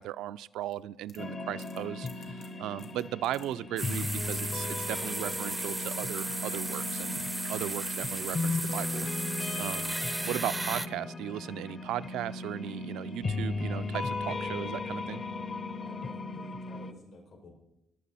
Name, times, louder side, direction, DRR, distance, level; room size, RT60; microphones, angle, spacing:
voice 1, 0.0-7.2 7.5-9.3 9.6-10.0 10.2-15.2, right 13 dB, 90° right, 14 dB, 0.3 m, -37 dB
sound 1, 0.6-4.9 6.5-6.6 6.7-8.8 9.1-9.7 10.2-10.6, left 5 dB, 70° left, 3.0 m, -58 dB
sound 2, 1.2-16.9, left 3 dB, 40° left, 0.7 m, -36 dB
sound 3, 3.8-10.9, right 2 dB, 15° right, 0.4 m, -35 dB
voice 2, 15.8-17.6, left 2 dB, 85° left, 0 dB, 5.2 m, -52 dB
22.0 x 7.5 x 4.2 m, 0.89 s
cardioid pair, 90°, 0 cm